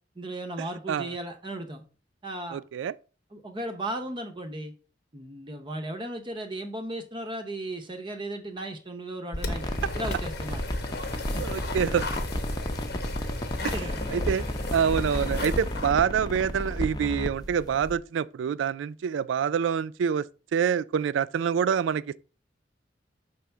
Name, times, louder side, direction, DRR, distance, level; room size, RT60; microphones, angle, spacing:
voice 1, 0.2-1.8 2.2-2.6 3.3-4.7 5.1-10.6 11.3-11.4 13.6-14.0, right 1 dB, 25° right, 0.7 m, -36 dB
voice 2, 2.5-2.9 11.4-12.2 13.6-13.7 14.1-14.5 14.7-22.2, right 7 dB, 90° right, 0.3 m, -26 dB
sound 1, 9.3-16.0, left 2 dB, 60° left, 0.9 m, -34 dB
sound 2, 9.4-18.0, left 1 dB, 20° left, 0.7 m, -33 dB
6.1 x 3.4 x 5.5 m
head